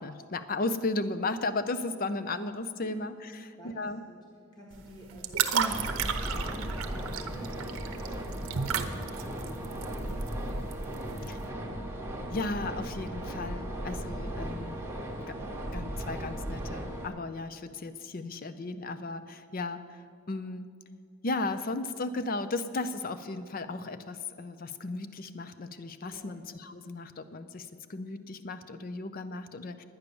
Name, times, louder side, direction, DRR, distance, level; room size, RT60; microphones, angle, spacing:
voice 1, 0.0-4.0 5.5-5.9 11.3-11.4 12.3-14.8 15.3-15.4 15.7-20.7 21.2-29.8, left 2 dB, 40° left, 12 dB, 0.5 m, -35 dB
voice 2, 3.3-4.3 4.5-5.6 5.9-9.1 9.3-10.4 10.8-11.5 26.1-26.4, equal, 20° left, -2 dB, 1.3 m, -50 dB
sound 1, 4.7-11.4, right 7 dB, 65° right, 0.8 m, -34 dB
sound 2, 5.7-17.1, right 1 dB, 10° right, 1.1 m, -36 dB
10.5 x 9.5 x 6.9 m, 2.3 s
head